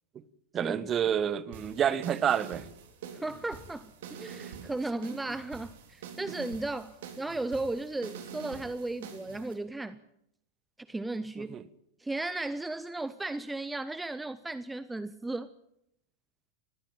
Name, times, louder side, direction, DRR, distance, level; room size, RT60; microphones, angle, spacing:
voice 1, 0.5-2.7 11.4-11.6, right 9 dB, 25° right, 1.2 m, -28 dB
sound 1, 1.5-9.5, right 7 dB, 55° right, 3.6 m, -46 dB
voice 2, 3.1-10.0 10.9-11.6 12.0-15.5, right 2 dB, 5° right, 0.8 m, -35 dB
21.0 x 15.0 x 8.9 m
figure-of-eight pair, 90°, 0 cm